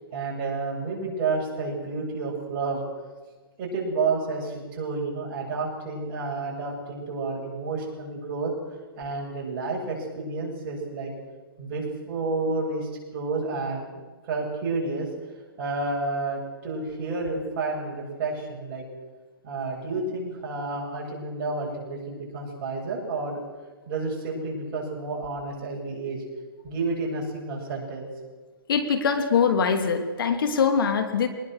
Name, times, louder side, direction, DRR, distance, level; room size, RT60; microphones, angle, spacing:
voice 1, 0.1-2.8 3.6-8.5 9.0-11.1 11.6-13.8 14.2-15.1 15.6-18.8 19.4-23.4 23.9-26.2 26.6-28.1, right 3 dB, 35° right, -2 dB, 7.7 m, -30 dB
voice 2, 28.7-31.3, left 6 dB, 65° left, 7 dB, 2.6 m, -23 dB
23.5 x 20.0 x 6.5 m, 1.3 s
hypercardioid pair, 155°, 13 cm